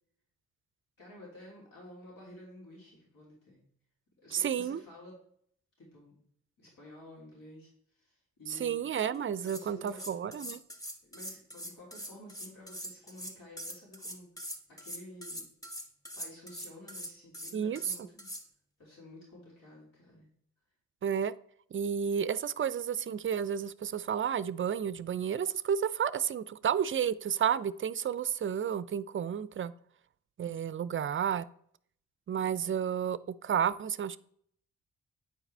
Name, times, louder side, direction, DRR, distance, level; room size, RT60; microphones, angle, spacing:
voice 1, 1.0-3.6 4.2-5.2 5.8-6.2 6.6-7.7 7.9-8.8 9.4-10.4 11.0-15.4 16.1-18.3 18.8-20.3, left 1 dB, 70° left, -5 dB, 3.3 m, -52 dB
voice 2, 4.3-4.8 8.5-10.6 17.5-18.1 21.0-21.3 21.7-29.7 30.4-31.5 32.3-34.2, right 8 dB, 35° right, 17 dB, 0.4 m, -31 dB
sound 1, 9.1-9.2 9.4-18.4, equal, 10° left, 1.4 m, -43 dB
9.0 x 4.7 x 3.4 m, 0.64 s
supercardioid pair, 50°, 35 cm